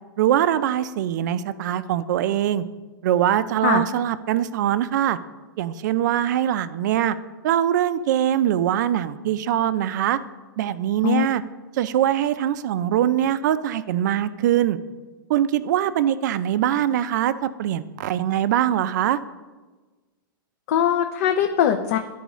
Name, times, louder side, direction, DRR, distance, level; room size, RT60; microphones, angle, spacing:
voice 1, 0.2-2.6 3.0-5.2 5.6-7.2 7.4-10.2 10.6-11.4 11.7-14.8 15.3-19.2, right 11 dB, 55° right, 14 dB, 0.4 m, -22 dB
voice 2, 20.7-22.0, left 9 dB, 40° left, 5 dB, 0.4 m, -21 dB
12.0 x 4.6 x 3.0 m, 1.3 s
supercardioid pair, 165°, 12 cm